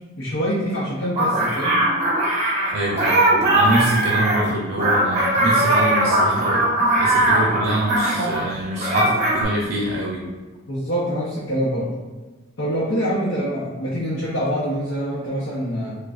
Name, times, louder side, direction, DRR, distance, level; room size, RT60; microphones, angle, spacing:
voice 1, 0.2-1.8 10.7-11.9 12.6-16.0, equal, 80° left, -8 dB, 0.8 m, -25 dB
sound 1, 1.2-8.5 8.8-9.4, right 1 dB, 35° right, 0.9 m, -19 dB
voice 2, 2.7-6.6 7.0-10.2, right 1 dB, 55° right, -2 dB, 0.5 m, -24 dB
4.8 x 2.3 x 2.4 m, 1.3 s
head